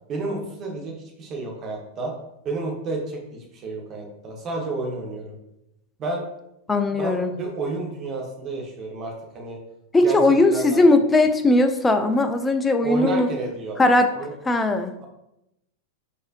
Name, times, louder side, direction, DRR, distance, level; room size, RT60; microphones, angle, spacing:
voice 1, 0.1-2.1 2.4-5.3 6.0-6.2 6.9-9.6 10.0-10.2 10.5-10.8 12.8-13.8 14.1-14.3, right 2 dB, 30° right, 0 dB, 0.8 m, -30 dB
voice 2, 6.7-7.3 9.9-13.3 13.8-14.1 14.5-14.9, left 2 dB, 10° left, 7 dB, 0.3 m, -18 dB
4.2 x 2.5 x 2.5 m, 0.84 s
figure-of-eight pair, 90°, 0 cm